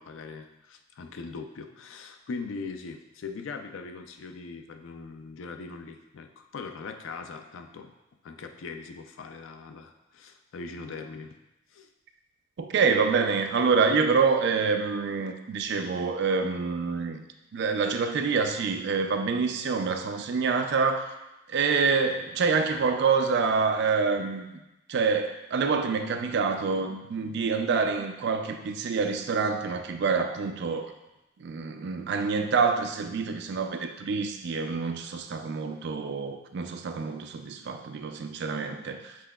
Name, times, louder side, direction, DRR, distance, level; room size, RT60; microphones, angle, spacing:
voice 1, 0.0-7.9 8.2-11.4 11.7-11.9, left 4 dB, 75° left, 6 dB, 0.4 m, -40 dB
voice 2, 12.6-17.2 17.5-21.1 21.5-24.4 24.9-30.9 31.4-39.2, right 5 dB, 60° right, 6 dB, 0.4 m, -26 dB
5.8 x 3.6 x 2.3 m, 0.97 s
head